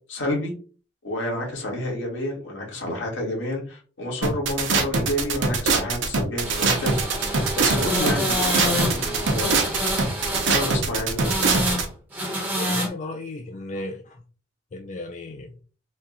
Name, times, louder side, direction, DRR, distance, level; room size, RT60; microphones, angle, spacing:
voice 1, 0.1-0.5 1.0-9.6 10.5-11.6, left 1 dB, 85° left, -1 dB, 1.9 m, -29 dB
sound 1, 4.2-11.9, right 4 dB, 80° right, 0.8 m, -23 dB
sound 2, 6.4-10.8 11.2-11.9 12.1-12.9, equal, 10° right, 1.2 m, -27 dB
voice 2, 12.6-14.2 14.7-15.5, left 2 dB, 40° left, 4 dB, 0.4 m, -35 dB
4.1 x 2.4 x 3.9 m, 0.39 s
head